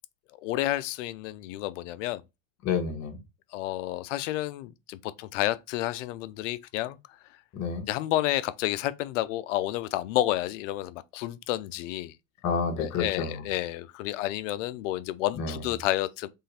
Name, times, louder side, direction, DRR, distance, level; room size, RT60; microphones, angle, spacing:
voice 1, 0.4-2.2 3.5-7.0 7.9-12.1 12.8-16.3, left 15 dB, 65° left, 0.6 m, -30 dB
voice 2, 2.6-3.2 7.5-7.8 12.4-13.4 15.3-15.6, left 5 dB, 40° left, 1.5 m, -29 dB
3.8 x 3.3 x 4.2 m
supercardioid pair, 130°, 41 cm